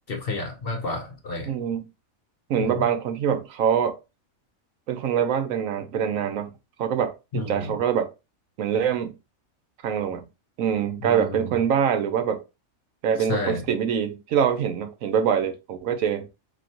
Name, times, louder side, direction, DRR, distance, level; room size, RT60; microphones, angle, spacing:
voice 1, 0.1-1.5 2.6-2.8 7.3-7.8 11.0-11.5 13.3-13.6, left 2 dB, 50° left, 0.8 m, -30 dB
voice 2, 1.4-1.9 2.5-4.0 4.9-6.5 6.8-8.1 8.6-9.1 9.8-10.2 10.6-12.4 13.0-16.3, right 8 dB, 75° right, 1.1 m, -24 dB
4.2 x 3.2 x 2.8 m
omnidirectional pair, 1.4 m